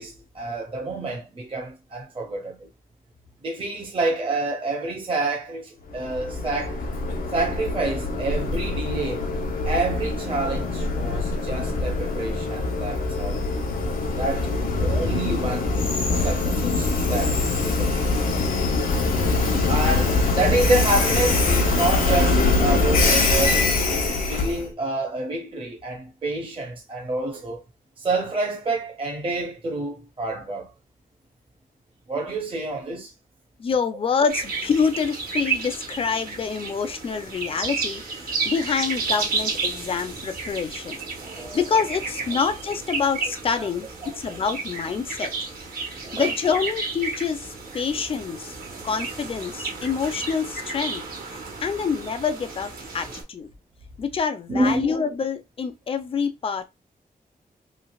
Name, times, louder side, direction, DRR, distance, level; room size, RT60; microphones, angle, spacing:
voice 1, 0.0-2.7 3.4-6.8 7.3-9.2 9.6-13.4 14.2-14.5 14.8-15.7 16.2-18.0 18.2-18.5 19.7-27.6 28.0-30.7 32.1-33.1 41.2-41.6 43.6-43.7 44.0-44.4 46.0-46.3 54.5-54.9, right 2 dB, 35° right, 0.6 m, -28 dB
Train, 5.9-24.7, left 3 dB, 70° left, 0.8 m, -23 dB
voice 2, 33.6-41.0 41.5-45.3 46.1-48.6 48.8-53.5 54.0-56.7, left 6 dB, 40° left, 0.4 m, -26 dB
sound 1, 34.3-53.2, right 4 dB, 80° right, 1.2 m, -32 dB
3.2 x 2.8 x 2.3 m
wide cardioid pair, 165°, 15 cm